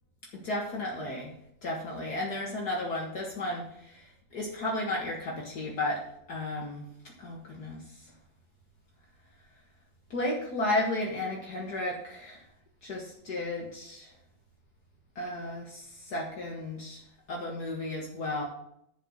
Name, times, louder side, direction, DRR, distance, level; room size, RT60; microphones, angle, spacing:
voice 1, 0.3-1.3 1.6-4.0 4.3-6.0 6.3-6.9 7.2-7.8 10.1-12.4 12.8-14.1 15.2-17.0 17.3-18.4, left 1 dB, 55° left, -1 dB, 2.1 m, -33 dB
11.0 x 5.4 x 6.6 m, 0.73 s
omnidirectional pair, 2.1 m